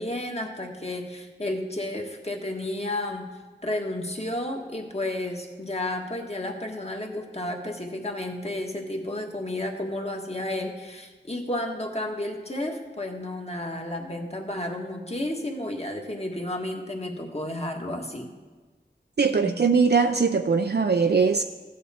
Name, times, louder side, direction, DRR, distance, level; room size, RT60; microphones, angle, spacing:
voice 1, 0.0-3.3 3.6-18.3 19.4-19.6, left 1 dB, 35° left, 2 dB, 1.6 m, -32 dB
voice 2, 19.2-21.5, right 5 dB, 60° right, 6 dB, 0.5 m, -21 dB
15.5 x 8.4 x 4.3 m, 1.3 s
wide cardioid pair, 50°, 19 cm